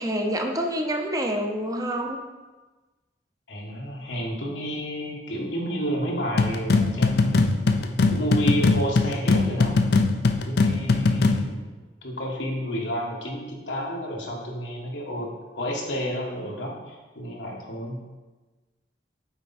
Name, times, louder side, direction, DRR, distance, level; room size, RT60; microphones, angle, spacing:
voice 1, 0.0-2.2, equal, 20° right, 3 dB, 0.7 m, -27 dB
voice 2, 3.5-9.7 10.5-11.7 12.0-18.0, equal, 90° left, -2 dB, 1.6 m, -30 dB
sound 1, 6.4-11.5, left 3 dB, 65° left, 0.5 m, -21 dB
8.0 x 4.5 x 4.2 m, 1.2 s
head